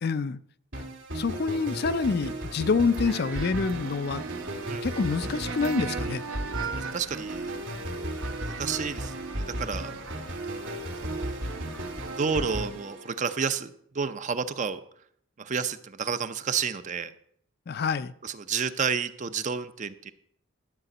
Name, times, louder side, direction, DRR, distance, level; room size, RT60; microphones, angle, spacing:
voice 1, 0.0-0.4 1.1-4.2 4.8-6.2 17.7-18.1, left 4 dB, 50° left, 0.4 m, -27 dB
sound 1, 0.7-13.7, right 1 dB, 60° right, 2.4 m, -35 dB
sound 2, 2.9-12.7, right 5 dB, 80° right, 1.1 m, -39 dB
voice 2, 6.7-7.5 8.4-9.9 11.0-11.4 12.2-14.8 15.4-17.1 18.2-20.1, right 6 dB, 35° right, 0.5 m, -31 dB
12.5 x 5.0 x 7.8 m
head